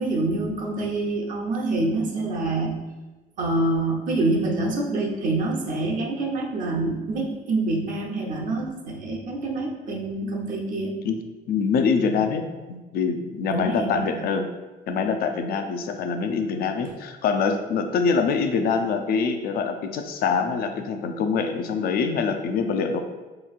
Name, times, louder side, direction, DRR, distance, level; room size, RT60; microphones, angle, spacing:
voice 1, 0.0-2.7 3.4-11.0 13.5-14.3, right 2 dB, 50° right, -1 dB, 0.8 m, -26 dB
voice 2, 11.5-14.5 14.9-23.0, left 5 dB, 65° left, 6 dB, 0.5 m, -24 dB
4.3 x 3.0 x 2.4 m, 1.2 s
cardioid pair, 110°, 17 cm